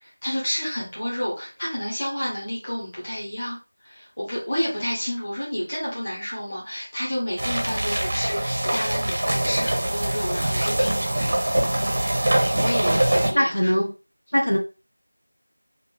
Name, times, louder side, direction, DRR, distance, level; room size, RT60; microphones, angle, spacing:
voice 1, 0.0-3.6 3.8-11.3 12.6-13.7, equal, 20° left, 1.6 m, -30 dB
sound 1, 7.4-13.3, right 1 dB, 20° right, 0.6 m, -23 dB
voice 2, 13.3-13.9 14.3-14.6, equal, 65° left, 0.8 m, -21 dB
4.6 x 2.6 x 3.3 m
figure-of-eight pair, 175°, 0 cm